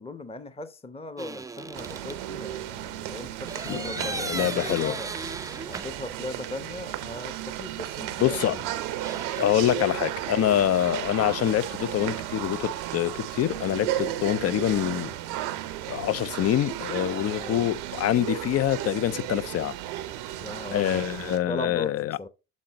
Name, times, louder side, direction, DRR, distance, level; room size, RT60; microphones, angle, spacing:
voice 1, 0.0-5.1 5.7-8.7 9.7-9.9 17.2-17.6 20.4-21.1 21.5-22.3, left 2 dB, 15° left, 0.9 m, -38 dB
sound 1, 1.2-2.2 3.5-6.3 6.6-6.7 8.3-9.9, right 3 dB, 10° right, 0.4 m, -37 dB
sound 2, 1.7-21.4, right 13 dB, 85° right, 0.7 m, -34 dB
voice 2, 3.7-5.0 8.2-8.6 9.4-15.1 15.9-19.7 20.7-22.2, left 12 dB, 45° left, 0.5 m, -25 dB
7.6 x 4.0 x 4.0 m
hypercardioid pair, 50°, 34 cm